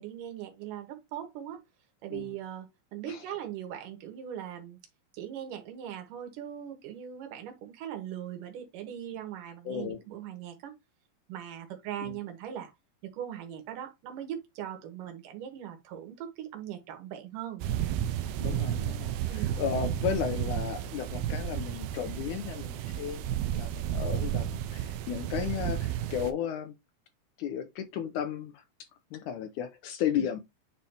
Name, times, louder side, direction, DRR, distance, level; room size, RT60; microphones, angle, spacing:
voice 1, 0.0-1.6 2.0-4.8 5.1-10.8 11.3-12.7 13.0-17.6 19.3-19.6 30.1-30.3, right 10 dB, 65° right, 3.0 m, -40 dB
voice 2, 9.7-10.0 12.0-12.2 18.4-23.3 23.5-26.7 27.4-28.6 29.1-30.4, left 9 dB, 80° left, 1.8 m, -34 dB
sound 1, 17.6-26.3, right 10 dB, 85° right, 2.4 m, -32 dB
9.0 x 4.2 x 2.9 m
omnidirectional pair, 4.3 m